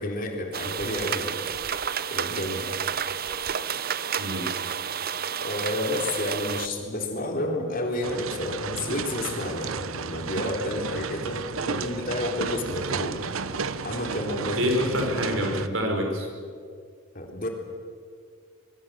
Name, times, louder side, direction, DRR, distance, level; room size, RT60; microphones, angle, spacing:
voice 1, 0.0-1.4 2.1-2.7 5.4-13.3 13.8-14.7 15.0-15.1 17.1-17.5, left 1 dB, 45° left, 2 dB, 3.7 m, -30 dB
sound 1, 0.5-6.7, right 8 dB, 45° right, 0.7 m, -30 dB
voice 2, 4.2-4.5 14.6-16.3, equal, 70° right, 3 dB, 5.2 m, -26 dB
sound 2, 8.0-15.7, right 5 dB, 85° right, 0.9 m, -33 dB
25.5 x 22.5 x 7.5 m, 2.2 s
head